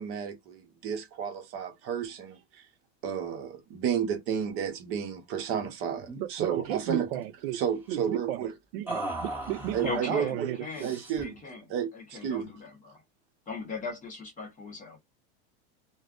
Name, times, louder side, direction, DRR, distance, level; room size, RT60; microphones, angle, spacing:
voice 1, 0.0-2.6 3.0-7.1 7.5-8.5 9.7-10.5 10.8-11.4 11.7-12.5, right 8 dB, 40° right, 0.8 m, -32 dB
sound 1, 5.5-5.7 6.0-6.2 6.5-7.3 8.9-10.1 10.7-11.4, right 2 dB, 5° right, 1.3 m, -38 dB
voice 2, 6.2-7.6 7.9-11.0, right 12 dB, 65° right, 0.5 m, -34 dB
voice 3, 9.8-10.9 11.2-11.6 11.9-13.0 13.5-15.0, left 3 dB, 25° left, 1.3 m, -38 dB
3.2 x 2.1 x 2.5 m
supercardioid pair, 145°, 33 cm